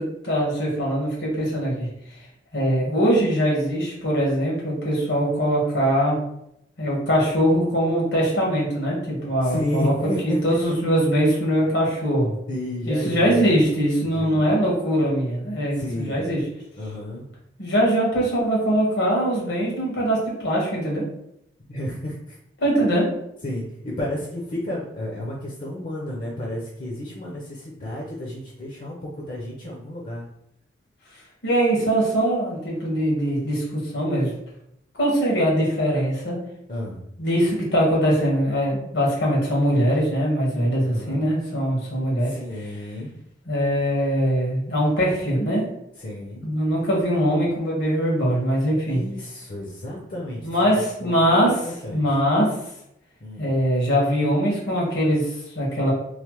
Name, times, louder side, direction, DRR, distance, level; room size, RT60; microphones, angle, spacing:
voice 1, 0.0-1.9 2.5-6.2 6.8-12.4 12.9-16.4 17.6-21.0 22.6-23.1 31.4-34.3 35.0-36.4 37.2-42.3 43.5-45.6 46.4-49.0 50.4-52.5 53.4-55.9, equal, 85° left, -3 dB, 1.3 m, -22 dB
voice 2, 9.4-10.7 12.5-13.5 14.0-14.5 15.7-16.3 16.8-17.3 21.6-22.4 23.4-30.3 36.7-37.0 40.8-41.3 42.2-43.1 46.0-46.4 48.9-50.6 51.0-51.4 51.7-52.0 53.2-53.5, left 1 dB, 50° left, -3 dB, 0.5 m, -31 dB
3.1 x 2.0 x 2.9 m, 0.77 s
head